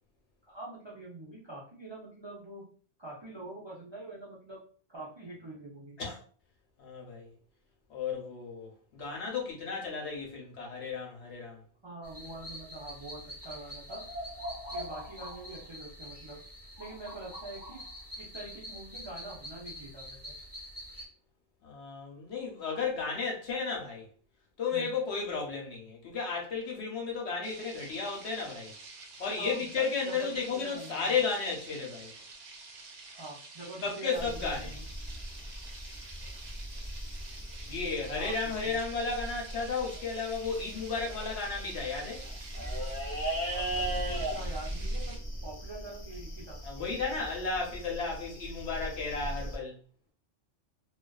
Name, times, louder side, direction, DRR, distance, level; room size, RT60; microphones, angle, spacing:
voice 1, 0.5-2.7 3.0-4.6 4.9-6.0 11.8-14.0 14.7-16.4 16.8-17.8 18.2-20.3 24.7-24.9 29.4-31.2 33.1-34.8 38.2-38.3 38.6-38.8 43.5-47.3 47.6-47.8, right 2 dB, 40° right, 0.4 m, -45 dB
voice 2, 6.8-7.3 7.9-11.6 21.6-24.1 24.6-28.7 29.2-32.1 33.8-34.7 37.7-42.2 46.6-49.8, left 5 dB, 65° left, 1.0 m, -34 dB
sound 1, 12.0-21.0, equal, 20° right, 0.8 m, -44 dB
sound 2, 27.4-45.2, right 3 dB, 65° right, 0.8 m, -49 dB
sound 3, 34.2-49.6, right 1 dB, 15° left, 0.7 m, -38 dB
2.4 x 2.3 x 2.3 m
omnidirectional pair, 1.3 m